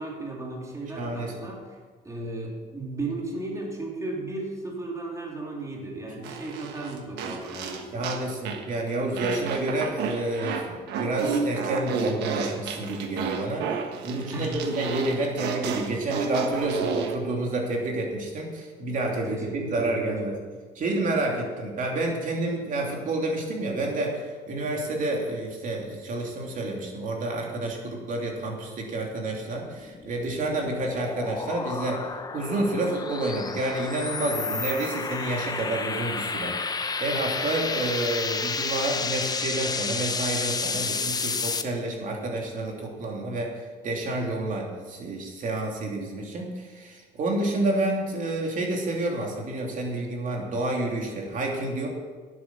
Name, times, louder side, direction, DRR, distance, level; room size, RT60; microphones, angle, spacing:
voice 1, 0.0-1.8 2.0-8.1 14.3-14.6 19.3-20.4, right 2 dB, 20° right, -1 dB, 3.0 m, -35 dB
voice 2, 1.0-1.3 7.9-13.7 14.0-20.3 20.8-36.7 37.0-51.9, right 2 dB, 50° right, 0 dB, 2.9 m, -29 dB
sound 1, 6.2-8.7 9.2-17.2, right 5 dB, 80° right, 1.3 m, -31 dB
sound 2, 29.6-41.6, left 4 dB, 25° left, 0.7 m, -31 dB
10.5 x 8.5 x 7.1 m, 1.4 s
cardioid pair, 110°, 17 cm